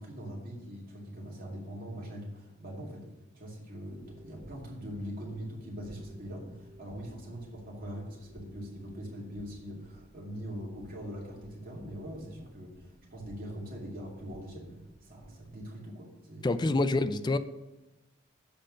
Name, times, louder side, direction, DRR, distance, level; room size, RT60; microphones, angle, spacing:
voice 1, 0.0-3.1 3.3-16.8, equal, 45° right, 2.4 m, -42 dB
sound 1, 3.9-15.7, right 1 dB, 85° right, 1.4 m, -53 dB
voice 2, 16.4-17.4, left 2 dB, 20° left, 0.4 m, -26 dB
7.8 x 5.1 x 6.4 m
head